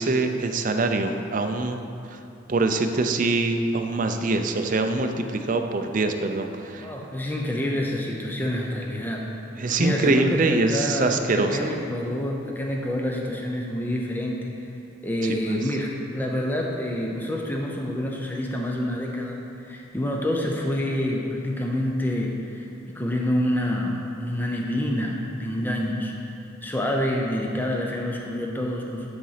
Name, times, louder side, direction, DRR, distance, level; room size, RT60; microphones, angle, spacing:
voice 1, 0.0-1.8 2.1-2.2 2.5-6.9 9.6-11.7, right 3 dB, 40° right, 6 dB, 0.5 m, -24 dB
voice 2, 6.8-9.3 9.8-14.5 15.0-26.1 26.6-29.1, left 1 dB, 10° left, -1 dB, 0.6 m, -27 dB
10.5 x 4.1 x 5.7 m, 2.8 s
head